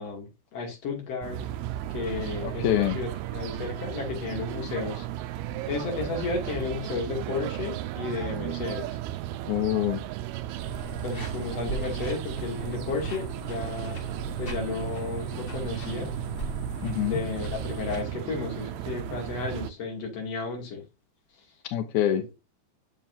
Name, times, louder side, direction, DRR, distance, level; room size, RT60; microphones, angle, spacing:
voice 1, 0.0-1.5 1.9-5.3 5.7-9.0 11.0-14.0 14.4-16.1 17.0-20.8 21.4-21.5, left 4 dB, 45° left, 3.2 m, -33 dB
sound 1, 1.2-19.7, right 13 dB, 80° right, 2.4 m, -35 dB
voice 2, 2.4-3.0 9.5-10.0 16.8-17.2 21.7-22.3, left 12 dB, 85° left, 1.7 m, -25 dB
sound 2, 10.6-18.0, right 2 dB, 60° left, 0.5 m, -38 dB
7.6 x 7.2 x 2.7 m
omnidirectional pair, 4.8 m